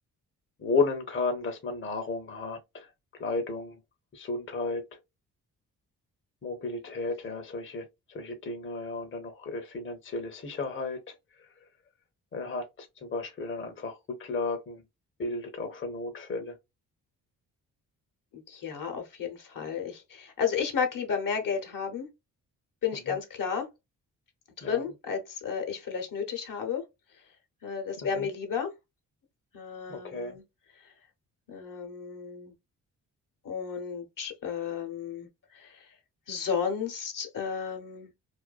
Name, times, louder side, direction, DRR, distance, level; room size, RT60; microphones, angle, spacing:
voice 1, 0.6-3.8 4.1-5.0 6.4-11.7 12.3-14.8 15.2-16.6 22.9-23.2 24.6-24.9 28.0-28.3 29.9-30.4, left 3 dB, 30° left, 0.7 m, -33 dB
voice 2, 18.5-22.1 22.8-23.7 24.6-26.8 27.6-28.7 29.5-30.4 31.5-32.5 33.4-35.3 35.5-35.9 36.3-38.1, left 6 dB, 55° left, 0.9 m, -32 dB
2.5 x 2.2 x 2.2 m
supercardioid pair, 55°, 38 cm